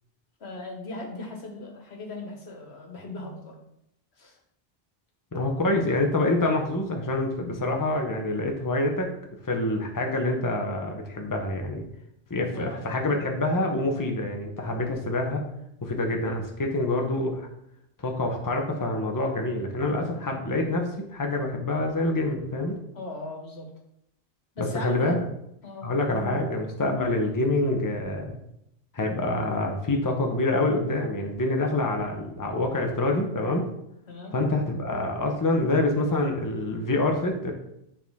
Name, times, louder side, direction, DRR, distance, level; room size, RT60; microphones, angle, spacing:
voice 1, 0.4-3.6 4.2-4.4 12.5-12.8 20.0-20.2 22.9-23.7 24.5-25.2 25.6-25.9 34.1-34.4, left 2 dB, 80° left, 2 dB, 1.6 m, -38 dB
voice 2, 5.3-9.1 9.4-11.8 12.3-15.4 15.8-17.5 18.0-22.8 24.6-25.2 25.8-28.3 28.9-33.6 34.3-37.5, left 2 dB, 20° left, 2 dB, 0.9 m, -26 dB
8.7 x 4.3 x 3.6 m, 0.79 s
omnidirectional pair, 1.1 m